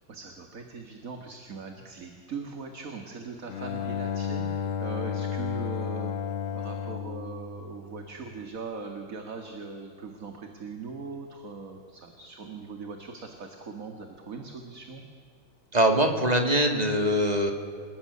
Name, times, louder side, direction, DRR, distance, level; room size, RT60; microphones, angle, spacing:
voice 1, 0.1-6.1 6.5-15.0, right 4 dB, 40° right, 4 dB, 2.2 m, -40 dB
Bowed string instrument, 3.5-8.3, left 7 dB, 85° left, 2.0 m, -33 dB
voice 2, 15.7-17.5, right 1 dB, 20° right, 4 dB, 2.7 m, -23 dB
28.0 x 19.5 x 9.8 m, 2.3 s
omnidirectional pair, 2.2 m